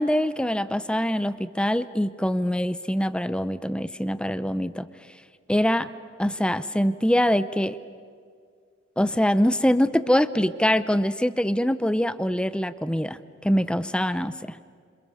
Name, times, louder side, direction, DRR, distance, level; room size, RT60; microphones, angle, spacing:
voice 1, 0.0-4.9 5.5-5.9 6.2-7.8 9.0-14.6, equal, 5° left, 14 dB, 0.7 m, -24 dB
28.5 x 27.0 x 7.1 m, 2.1 s
head